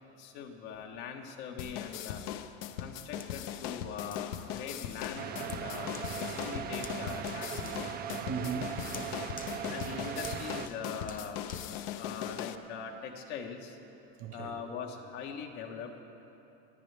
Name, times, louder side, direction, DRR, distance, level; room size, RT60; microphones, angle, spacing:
voice 1, 0.2-2.2 2.8-8.0 9.7-11.4 12.0-13.8 14.3-16.0, left 6 dB, 80° left, 1 dB, 1.5 m, -42 dB
sound 1, 1.6-12.6, left 11 dB, 65° left, 0.7 m, -39 dB
Hands, 3.2-12.7 13.2-13.3, left 6 dB, 25° left, 0.7 m, -53 dB
voice 2, 4.4-5.9 7.9-9.1 14.2-14.6, right 6 dB, 60° right, 4 dB, 1.4 m, -42 dB
sound 2, 5.1-10.7, right 9 dB, 30° right, 0.5 m, -39 dB
27.5 x 9.5 x 3.4 m, 2.9 s
supercardioid pair, 135°, 35 cm